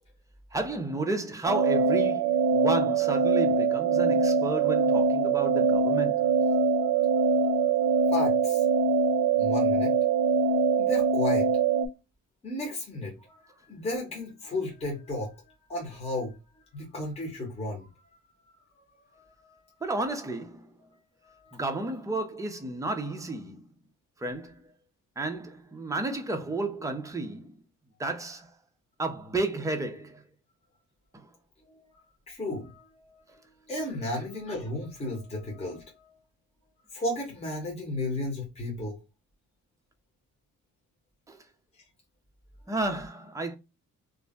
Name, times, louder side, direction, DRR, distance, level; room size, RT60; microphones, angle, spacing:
voice 1, 0.5-6.3 19.8-20.7 21.5-23.7 24.2-24.6 25.2-27.6 28.0-28.5 29.0-30.2 31.1-31.3 41.3-41.4 42.7-43.6, right 2 dB, 10° right, 0.4 m, -32 dB
sound 1, 1.4-11.9, right 5 dB, 70° right, 0.5 m, -23 dB
voice 2, 8.1-8.6 9.4-9.9 10.8-11.5 12.4-16.4 16.7-17.9 19.1-19.6 21.2-21.6 31.7-31.8 32.3-33.4 33.7-36.1 36.9-39.0, left 1 dB, 20° left, 0.9 m, -34 dB
2.5 x 2.0 x 3.4 m
cardioid pair, 155°, 33 cm